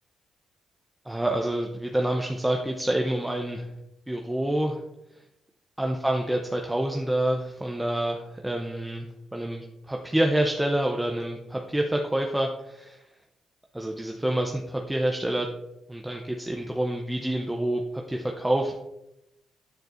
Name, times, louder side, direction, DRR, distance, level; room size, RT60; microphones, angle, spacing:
voice 1, 1.1-3.7 4.1-4.8 5.8-13.0 13.7-15.5 15.9-18.7, right 1 dB, 5° right, 1 dB, 0.6 m, -27 dB
9.2 x 4.5 x 2.5 m, 0.86 s
cardioid pair, 90°, 0 cm